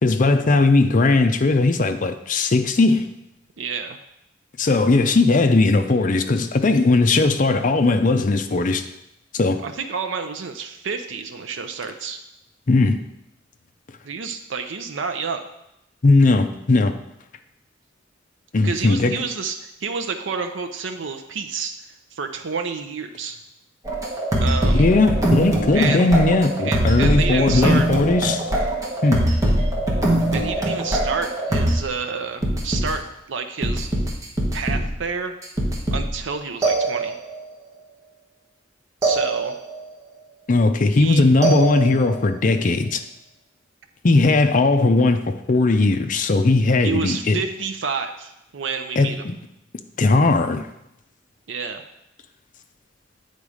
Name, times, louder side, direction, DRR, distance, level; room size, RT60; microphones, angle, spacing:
voice 1, 0.0-3.1 4.6-8.8 9.3-9.6 12.7-13.0 16.0-16.9 18.5-19.1 24.7-28.4 29.0-29.3 40.5-43.0 44.0-47.4 49.0-49.4 50.0-50.7, left 3 dB, 45° left, 7 dB, 0.5 m, -18 dB
voice 2, 3.6-4.0 9.6-12.2 14.0-15.4 18.6-21.7 22.1-23.4 24.4-24.9 25.7-26.1 26.6-27.9 30.3-33.9 34.5-35.4 35.9-37.1 39.0-39.5 40.9-41.2 46.8-49.2 51.5-51.8, right 5 dB, 75° right, 6 dB, 0.5 m, -29 dB
sound 1, 23.9-31.8 32.4-32.9 33.6-35.0 35.4-36.2 36.6-37.4 39.0-39.8 41.4-42.2, right 1 dB, 15° right, 1.2 m, -22 dB
8.6 x 4.0 x 4.9 m, 0.85 s
head